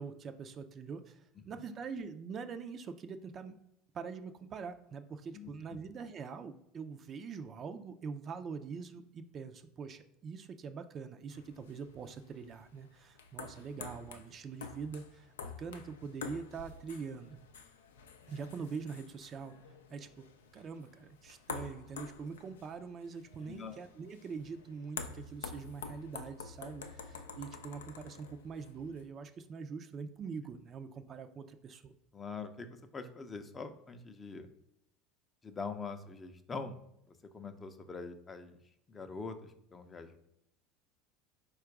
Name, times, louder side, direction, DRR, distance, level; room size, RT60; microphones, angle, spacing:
voice 1, 0.0-3.5 3.9-17.4 18.3-19.5 19.9-20.3 20.5-31.9, right 5 dB, 40° right, 8 dB, 0.4 m, -44 dB
sound 1, 11.3-29.1, left 5 dB, 85° left, 0.4 m, -48 dB
voice 2, 23.5-23.8 32.1-34.5 35.4-36.8 37.1-38.6 38.9-40.2, left 4 dB, 25° left, 8 dB, 0.5 m, -44 dB
4.3 x 2.3 x 4.7 m, 0.78 s
hypercardioid pair, 85°, 0 cm